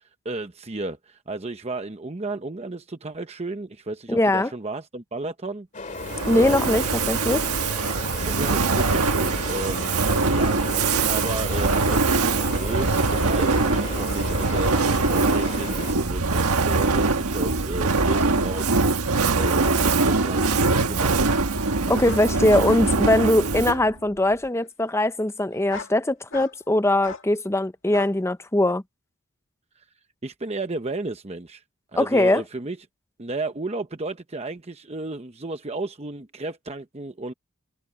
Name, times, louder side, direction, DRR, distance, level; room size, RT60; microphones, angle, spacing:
voice 1, 0.0-5.7 6.3-6.7 8.3-21.4 21.8-22.0 30.2-31.6 31.9-32.8 33.2-37.3, right 2 dB, 30° right, 0.9 m, -33 dB
voice 2, 4.1-4.5 6.3-7.4 21.9-28.8 31.9-32.4, left 1 dB, 10° left, 0.7 m, -21 dB
sound 1, 5.7-15.9, left 3 dB, 35° left, 2.2 m, -36 dB
Fire, 6.0-23.9, right 3 dB, 90° right, 1.5 m, -23 dB
sound 2, 19.9-20.0 22.0-22.3 22.7-22.9 23.3-23.8 24.5-24.7 25.5-26.0 26.3-26.6 27.0-27.3 27.9-28.1 28.7-28.8, left 5 dB, 60° left, 2.0 m, -38 dB
head